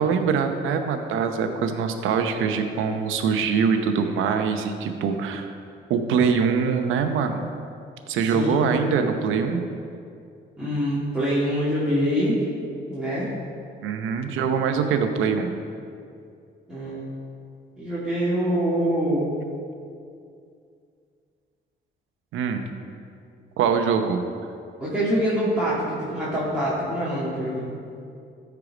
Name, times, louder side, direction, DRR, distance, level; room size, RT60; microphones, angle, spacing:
voice 1, 0.0-5.5 5.9-7.4 8.1-9.6 13.8-15.5 22.3-22.7 23.6-24.2, right 6 dB, 90° right, 7 dB, 0.8 m, -23 dB
voice 2, 8.3-8.8 10.6-12.4 12.9-13.3 16.7-17.0 17.8-19.3 24.8-27.7, equal, 5° right, -11 dB, 2.5 m, -25 dB
13.5 x 4.8 x 5.0 m, 2.4 s
cardioid pair, 90°, 20 cm